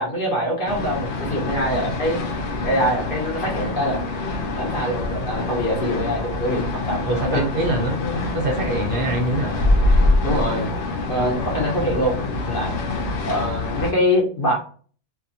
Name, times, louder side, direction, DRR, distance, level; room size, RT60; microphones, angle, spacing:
voice 1, 0.0-4.0 4.4-7.5 10.2-10.7 11.1-12.2 12.5-12.8 13.2-14.6, equal, 50° left, -2 dB, 1.0 m, -24 dB
sound 1, 0.7-13.9, left 2 dB, 70° left, 0.9 m, -25 dB
voice 2, 7.1-9.7, right 1 dB, 55° right, 1 dB, 0.7 m, -24 dB
2.5 x 2.5 x 2.6 m, 0.43 s
omnidirectional pair, 1.2 m